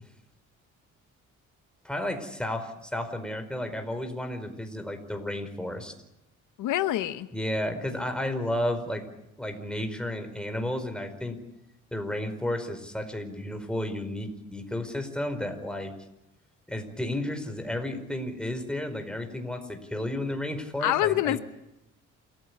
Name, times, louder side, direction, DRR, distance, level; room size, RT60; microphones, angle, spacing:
voice 1, 1.8-5.9 7.3-9.1 9.4-11.4 11.9-15.9 16.7-21.4, left 1 dB, 5° left, 6 dB, 4.8 m, -32 dB
voice 2, 6.6-7.3 20.8-21.4, left 14 dB, 85° left, 12 dB, 1.0 m, -25 dB
28.0 x 15.5 x 9.8 m, 0.88 s
cardioid pair, 90°, 30 cm